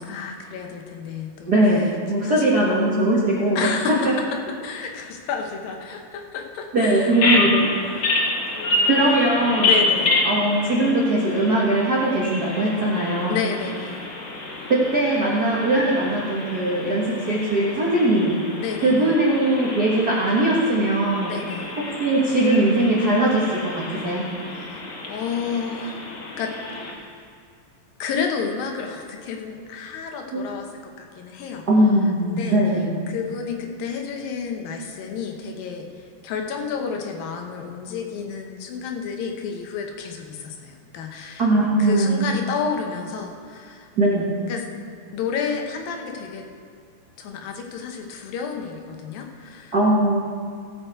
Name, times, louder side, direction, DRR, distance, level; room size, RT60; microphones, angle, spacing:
voice 1, 0.0-1.5 2.1-2.5 3.6-4.1 4.6-7.2 7.5-8.1 8.5-9.1 9.6-10.2 13.3-14.1 18.6-19.1 21.3-21.7 24.5-24.8 25.1-26.1 26.4-27.2 28.0-31.7 32.2-32.6 33.1-35.9 36.2-41.5 41.8-43.9 44.5-44.6 45.1-46.4 47.2-49.7, left 6 dB, 80° left, 3 dB, 2.8 m, -31 dB
voice 2, 1.5-3.7 4.0-4.1 6.7-7.6 8.9-9.7 10.2-13.5 14.7-18.3 18.8-21.3 22.0-24.3 30.3-30.4 31.7-32.9 41.4-42.2 44.0-44.3 49.7-50.2, right 1 dB, 75° right, -5 dB, 0.9 m, -20 dB
Bird vocalization bird call bird song, 7.1-26.9, left 2 dB, 65° left, 1.0 m, -28 dB
15.5 x 8.0 x 4.6 m, 2.2 s
omnidirectional pair, 4.1 m